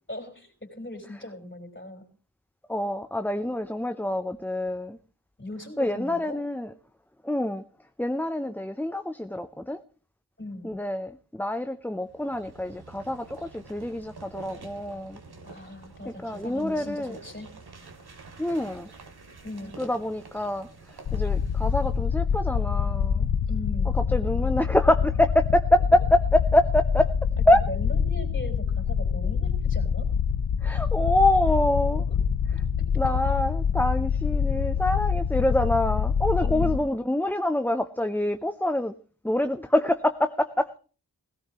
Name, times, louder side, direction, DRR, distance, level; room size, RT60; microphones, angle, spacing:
voice 1, 0.1-2.1 5.4-6.5 10.4-10.8 15.4-17.5 19.4-19.8 23.5-23.9 27.7-30.1 32.8-32.9 36.4-36.8, left 1 dB, 30° left, 4.5 m, -39 dB
voice 2, 2.7-5.0 5.8-6.7 7.2-7.6 8.0-9.8 10.6-15.2 16.2-17.2 18.4-18.9 19.8-23.3 23.9-27.1 27.5-27.6 30.6-32.0 33.0-38.9 39.2-40.8, left 1 dB, 5° left, 0.7 m, -26 dB
sound 1, 12.0-22.0, right 3 dB, 75° right, 2.8 m, -47 dB
sound 2, 21.0-36.8, left 7 dB, 80° left, 0.9 m, -25 dB
17.5 x 16.5 x 3.0 m
wide cardioid pair, 65°, 39 cm